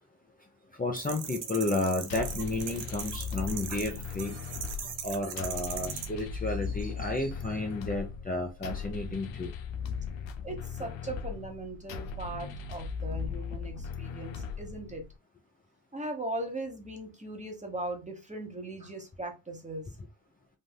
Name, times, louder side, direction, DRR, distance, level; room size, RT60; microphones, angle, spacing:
voice 1, 0.7-4.3 5.0-9.5, left 2 dB, 20° left, 0.7 m, -32 dB
sound 1, 1.0-6.0, right 8 dB, 70° right, 0.8 m, -39 dB
sound 2, 2.1-15.1, left 5 dB, 80° left, 0.6 m, -38 dB
voice 2, 10.4-15.1 15.9-19.9, right 2 dB, 15° right, 1.1 m, -39 dB
3.6 x 2.5 x 2.2 m
supercardioid pair, 50°, 45 cm